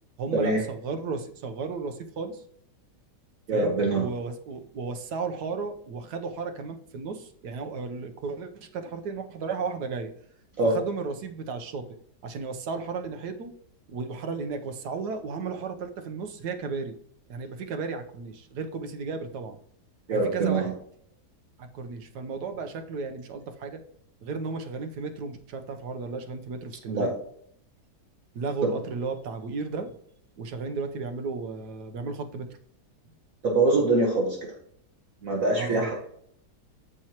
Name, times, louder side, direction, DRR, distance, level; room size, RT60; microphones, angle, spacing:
voice 1, 0.2-2.4 3.5-10.1 10.6-12.0 12.2-13.5 13.9-16.9 17.3-19.6 20.1-20.7 21.6-23.8 24.2-27.1 28.3-29.9 30.4-32.5 35.6-35.9, right 4 dB, 70° right, 6 dB, 1.4 m, -34 dB
voice 2, 3.5-4.1 10.6-10.8 20.1-20.7 26.9-27.1 28.6-28.8 33.4-34.4 35.2-35.9, right 2 dB, 55° right, -1 dB, 1.6 m, -24 dB
13.5 x 4.5 x 2.9 m, 0.66 s
omnidirectional pair, 1.8 m